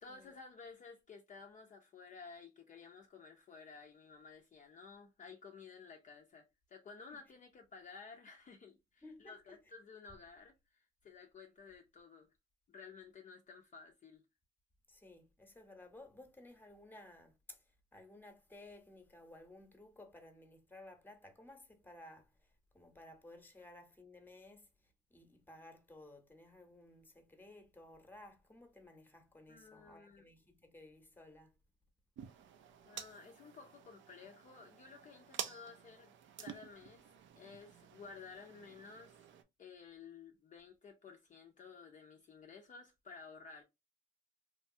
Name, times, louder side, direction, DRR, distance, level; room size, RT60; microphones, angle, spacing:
voice 1, 0.0-12.3 12.7-14.2 29.5-30.3 32.8-36.1 36.4-37.0 37.4-39.2 39.6-43.6, left 5 dB, 40° left, 0.4 m, -54 dB
voice 2, 9.0-9.6 14.9-17.6 17.9-22.3 22.7-24.7 25.1-31.5, left 2 dB, 10° left, 0.8 m, -56 dB
sound 1, 32.2-39.4, right 9 dB, 75° right, 0.5 m, -50 dB
3.1 x 2.2 x 2.6 m
cardioid pair, 90°, 20 cm